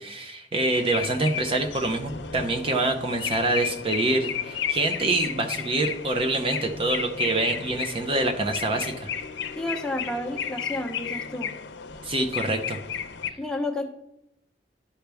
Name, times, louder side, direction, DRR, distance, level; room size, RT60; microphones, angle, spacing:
voice 1, 0.0-9.1 12.0-12.8, right 2 dB, 30° right, 4 dB, 0.7 m, -26 dB
sound 1, 0.7-13.3, left 7 dB, 80° left, 0.7 m, -33 dB
voice 2, 9.6-11.5 13.4-13.9, left 1 dB, 5° left, 2 dB, 0.9 m, -31 dB
11.5 x 5.7 x 3.4 m, 0.82 s
head